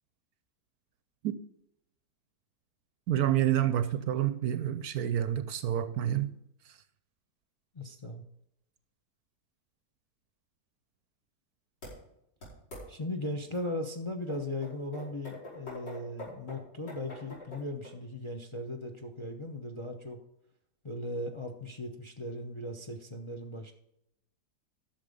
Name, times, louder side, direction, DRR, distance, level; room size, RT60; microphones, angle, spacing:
voice 1, 3.1-6.3, right 11 dB, 70° right, 1.0 m, -28 dB
voice 2, 7.7-8.2 12.9-20.2 20.8-23.7, left 1 dB, 30° left, 0.6 m, -38 dB
sound 1, 11.8-11.9 12.4-12.8 13.5-13.6 14.3-17.9, left 1 dB, 80° left, 6.1 m, -44 dB
11.5 x 6.8 x 5.3 m
omnidirectional pair, 1.8 m